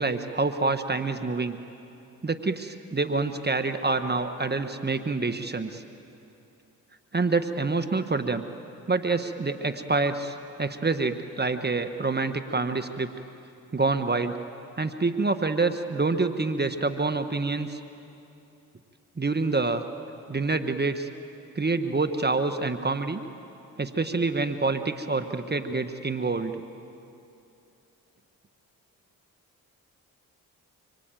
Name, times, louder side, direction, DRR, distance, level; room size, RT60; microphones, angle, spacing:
voice 1, 0.0-1.6 2.2-5.8 7.1-8.4 8.9-13.1 13.7-14.3 14.8-17.8 19.2-19.8 20.3-21.1 21.5-23.2 23.8-26.6, right 3 dB, 25° right, 8 dB, 1.3 m, -27 dB
25.5 x 24.5 x 9.1 m, 2.8 s
supercardioid pair, 50°, 36 cm